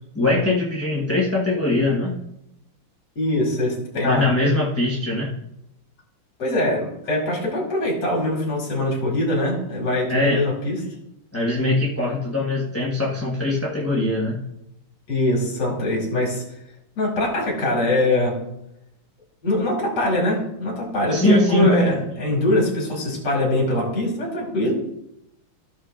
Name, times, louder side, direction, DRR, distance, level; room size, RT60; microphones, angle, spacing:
voice 1, 0.1-2.2 4.0-5.3 10.1-10.4 11.3-14.4 21.1-21.8, left 2 dB, 10° left, -4 dB, 0.8 m, -21 dB
voice 2, 3.2-4.3 6.4-10.8 15.1-16.4 17.0-18.4 19.4-24.7, left 1 dB, 55° left, -3 dB, 2.7 m, -23 dB
14.5 x 6.6 x 2.5 m, 0.81 s
omnidirectional pair, 2.3 m